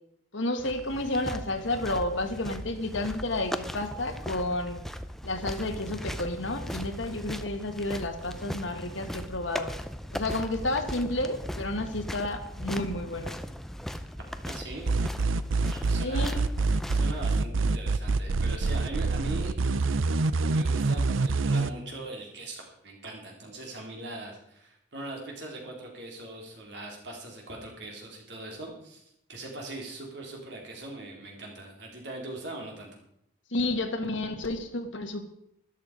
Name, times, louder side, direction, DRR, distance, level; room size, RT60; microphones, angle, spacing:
voice 1, 0.3-4.8 5.2-9.7 10.1-13.4 16.0-16.4 33.5-35.3, left 2 dB, 75° left, 6 dB, 1.8 m, -31 dB
sound 1, 0.6-17.3, equal, ahead, 0.6 m, -38 dB
voice 2, 14.4-14.9 15.7-16.4 16.9-20.0 20.5-29.0 29.3-32.9, right 2 dB, 60° right, -1 dB, 4.1 m, -41 dB
sound 2, 14.9-21.7, right 3 dB, 85° right, 0.6 m, -25 dB
13.0 x 12.0 x 5.1 m, 0.76 s
head